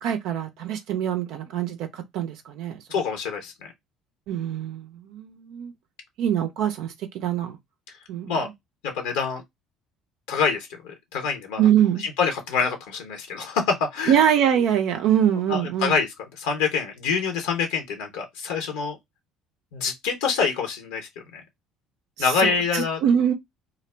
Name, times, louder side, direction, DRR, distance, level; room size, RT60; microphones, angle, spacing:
voice 1, 0.0-2.8 4.3-5.7 6.2-7.6 8.1-8.3 11.6-12.0 14.1-15.9 22.2-23.3, right 9 dB, 65° right, 0.4 m, -23 dB
voice 2, 2.9-3.7 8.3-8.5 8.8-9.4 10.3-11.7 12.0-14.2 15.5-16.1 16.4-19.0 19.7-21.4 22.2-23.0, left 5 dB, 75° left, 0.7 m, -26 dB
2.4 x 2.0 x 3.2 m
hypercardioid pair, 60°, 0 cm